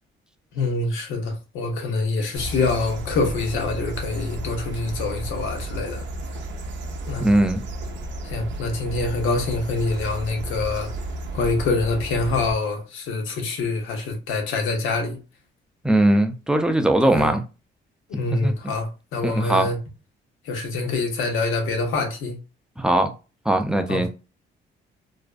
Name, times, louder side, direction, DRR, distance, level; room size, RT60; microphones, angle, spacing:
voice 1, 0.5-6.0 7.1-7.3 8.2-10.9 11.3-15.2 17.1-17.3 18.1-19.8 20.4-22.4 23.9-24.1, left 3 dB, 85° left, 0.7 m, -25 dB
sound 1, 2.4-12.5, right 1 dB, 65° right, 0.5 m, -33 dB
voice 2, 7.2-7.6 15.8-17.4 18.1-18.7 19.2-19.7 22.8-23.1 23.5-24.1, right 1 dB, 5° right, 0.4 m, -20 dB
2.5 x 2.1 x 2.3 m
cardioid pair, 90°, 20 cm